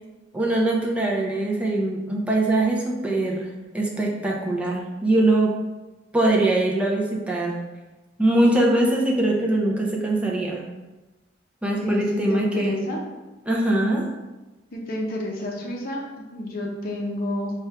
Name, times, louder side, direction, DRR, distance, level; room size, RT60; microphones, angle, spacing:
voice 1, 0.3-3.5 3.7-5.5 6.1-7.6 8.2-10.7 11.6-12.8 13.5-14.1, right 2 dB, 5° right, -2 dB, 0.5 m, -22 dB
voice 2, 11.8-13.0 14.7-17.5, left 1 dB, 55° left, -2 dB, 0.7 m, -29 dB
4.3 x 2.4 x 3.3 m, 1.1 s
head